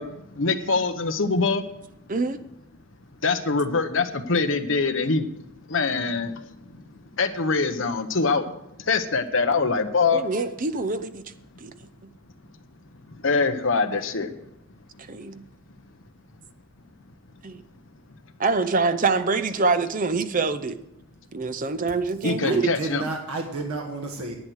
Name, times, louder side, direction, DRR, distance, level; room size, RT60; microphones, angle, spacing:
voice 1, 0.0-1.6 3.2-5.3 5.7-6.8 7.2-8.5 8.8-10.2 13.1-14.3 22.2-23.0, left 4 dB, 60° left, 1.0 m, -24 dB
voice 2, 10.1-11.2 11.6-11.7 15.1-15.4 17.4-17.6 18.4-20.8 21.3-22.7, right 4 dB, 40° right, 0.6 m, -25 dB
voice 3, 22.4-24.3, right 3 dB, 90° right, 1.5 m, -31 dB
10.5 x 9.0 x 6.4 m
head